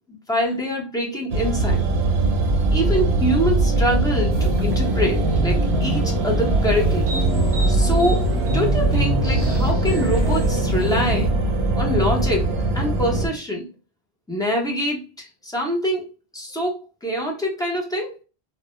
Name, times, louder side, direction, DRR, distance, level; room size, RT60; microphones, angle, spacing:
voice 1, 0.1-1.9 2.7-7.1 7.7-8.3 8.5-11.3 11.8-13.7 14.3-18.2, equal, 5° left, -1 dB, 0.3 m, -25 dB
sound 1, 1.3-13.3, right 2 dB, 90° right, 0.8 m, -21 dB
sound 2, 4.3-11.3, right 1 dB, 25° right, 0.9 m, -29 dB
2.1 x 2.0 x 2.9 m, 0.31 s
omnidirectional pair, 1.0 m